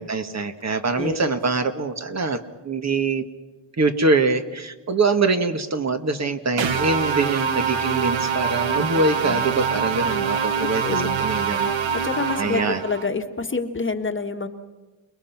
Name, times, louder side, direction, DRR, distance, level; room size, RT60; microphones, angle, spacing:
voice 1, 0.0-3.2 3.8-11.7 12.4-12.8, right 3 dB, 35° right, 7 dB, 1.6 m, -24 dB
voice 2, 1.0-1.4 6.7-6.9 9.2-9.4 10.6-11.2 11.9-14.5, left 4 dB, 25° left, 6 dB, 1.6 m, -28 dB
sound 1, 6.6-13.1, right 6 dB, 75° right, 1.8 m, -24 dB
29.0 x 21.0 x 6.0 m, 1.2 s
cardioid pair, 100°, 46 cm